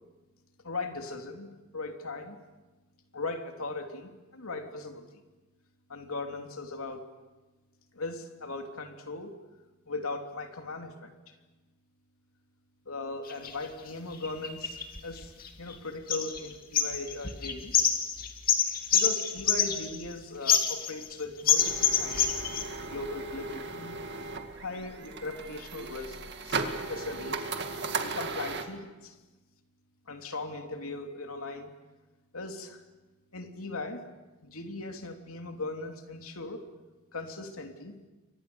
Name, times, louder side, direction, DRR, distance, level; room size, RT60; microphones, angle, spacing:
voice 1, 0.6-2.4 3.1-5.1 5.9-7.1 7.9-9.4 9.9-11.3 12.9-15.3 15.6-17.8 18.9-22.3 22.8-24.0 24.6-26.2 26.4-27.5 28.0-29.2 30.1-31.7 32.3-32.8 33.3-34.1 34.4-36.7 37.1-38.0, left 3 dB, 85° left, 4 dB, 3.0 m, -38 dB
sound 1, 13.3-13.5 14.2-15.7 16.1-16.5 16.7-20.1 20.4-21.1 21.5-22.6, left 8 dB, 40° left, 2.5 m, -26 dB
sound 2, 21.6-28.6, right 4 dB, 50° right, 2.2 m, -36 dB
29.5 x 24.5 x 7.0 m, 1.2 s
head